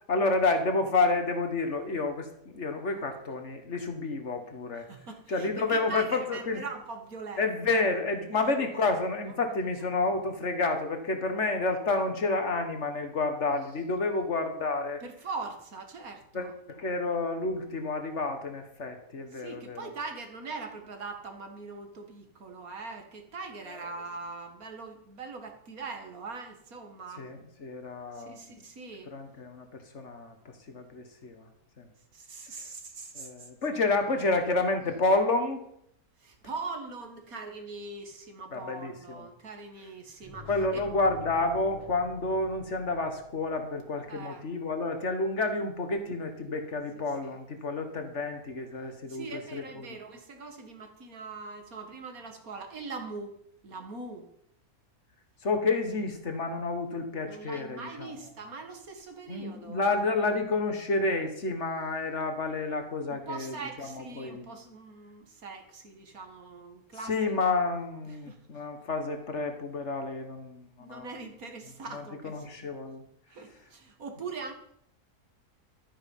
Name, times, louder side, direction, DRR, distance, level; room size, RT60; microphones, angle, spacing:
voice 1, 0.1-4.9 5.3-6.6 7.4-15.0 16.3-19.8 27.2-28.4 29.1-31.5 31.8-31.9 33.2-35.6 38.5-39.3 40.5-49.3 49.5-49.6 55.4-58.1 59.3-64.5 67.1-71.1 71.9-73.0, left 3 dB, 50° left, 6 dB, 1.8 m, -30 dB
voice 2, 4.7-7.4 7.7-7.9 8.3-8.9 9.5-9.8 15.0-16.5 19.3-27.3 28.1-29.1 32.1-33.5 36.2-40.8 44.1-44.5 47.2-47.4 49.1-53.4 53.6-54.3 57.2-59.9 63.1-67.2 67.4-67.5 68.1-68.6 70.8-72.5 73.3-74.5, right 4 dB, 65° right, 4 dB, 2.2 m, -42 dB
sound 1, 40.2-44.0, left 3 dB, 15° right, 1.6 m, -48 dB
12.5 x 9.3 x 5.5 m, 0.71 s
omnidirectional pair, 1.6 m